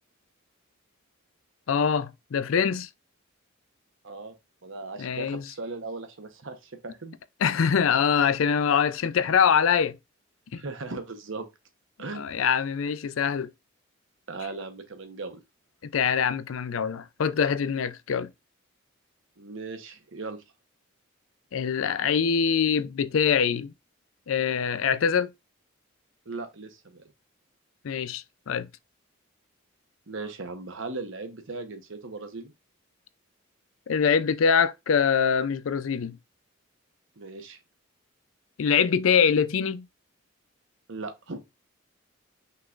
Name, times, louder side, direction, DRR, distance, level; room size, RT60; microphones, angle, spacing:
voice 1, 1.7-2.9 5.0-5.4 7.4-10.0 10.5-10.6 12.1-13.5 15.9-18.3 21.5-23.7 24.3-25.3 27.8-28.7 33.9-36.2 38.6-39.9, left 7 dB, 75° left, 0.4 m, -24 dB
voice 2, 4.0-4.3 4.6-7.2 10.5-11.5 12.0-12.2 14.3-15.4 19.4-20.4 26.3-27.0 30.1-32.5 37.2-37.6 40.9-41.4, right 3 dB, 65° right, 1.0 m, -38 dB
5.6 x 3.7 x 2.5 m
head